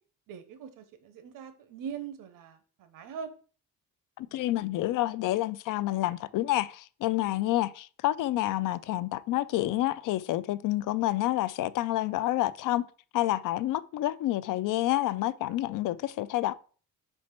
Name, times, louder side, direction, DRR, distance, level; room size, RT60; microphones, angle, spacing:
voice 1, 0.3-3.3, right 7 dB, 75° right, 1.1 m, -42 dB
voice 2, 4.2-12.8 13.1-16.5, left 15 dB, 70° left, 0.5 m, -28 dB
5.2 x 4.4 x 5.8 m
cardioid pair, 145°, 33 cm